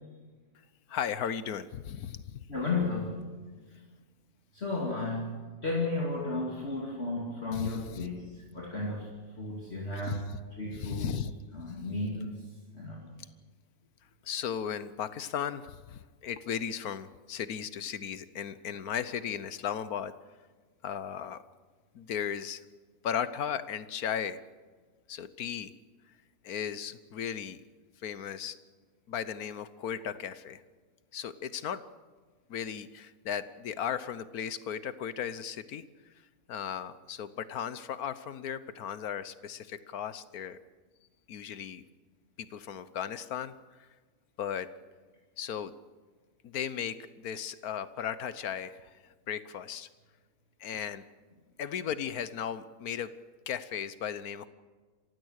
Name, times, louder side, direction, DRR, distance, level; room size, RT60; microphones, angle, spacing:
voice 1, 0.9-2.4 7.5-8.1 10.0-10.4 10.7-11.3 14.2-20.1 20.8-21.4 21.9-22.6 23.0-24.4 25.1-25.7 26.4-27.6 28.0-28.6 29.1-30.6 31.1-31.9 32.5-35.8 36.5-40.6 41.3-41.8 42.4-43.5 44.4-44.7 45.4-45.7 46.4-48.9 49.3-49.9 50.6-51.0 51.6-53.1 53.5-54.5, left 8 dB, 75° left, 14 dB, 1.4 m, -36 dB
voice 2, 2.5-3.3 4.5-10.3 10.6-11.1 11.5-12.3 12.7-13.1, left 2 dB, 45° left, -2 dB, 2.8 m, -33 dB
27.0 x 16.0 x 6.5 m, 1.4 s
omnidirectional pair, 1.6 m